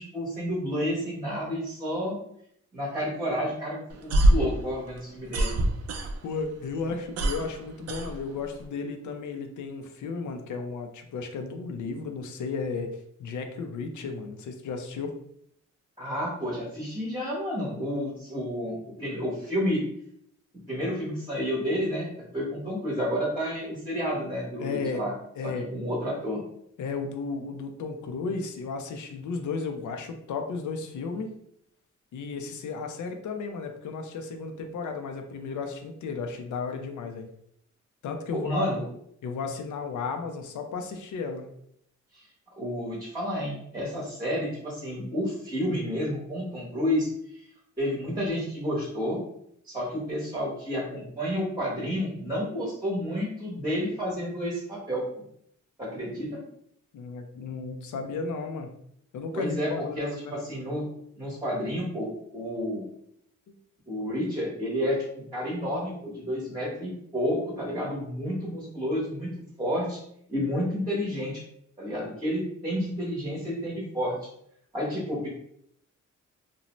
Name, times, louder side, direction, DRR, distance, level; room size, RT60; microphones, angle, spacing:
voice 1, 0.0-2.2 2.7-5.5 16.0-19.8 20.7-25.1 25.4-26.4 38.3-38.8 42.1-42.2 42.6-47.4 47.8-49.2 49.6-55.1 55.8-56.4 59.3-59.7 60.0-60.8 61.2-62.9 63.9-70.0 70.3-71.4 71.8-74.2 74.7-75.3, equal, 15° right, -6 dB, 0.9 m, -30 dB
sound 1, 3.9-6.5 6.8-8.7, right 1 dB, 55° right, 0.4 m, -24 dB
voice 2, 6.2-15.1 24.6-25.0 25.4-25.7 26.8-31.3 32.1-37.3 38.0-38.7 39.2-41.5 56.9-58.7 59.1-60.3 63.5-63.6, left 4 dB, 80° left, 5 dB, 0.5 m, -34 dB
2.6 x 2.1 x 2.9 m, 0.70 s
cardioid pair, 115°, 29 cm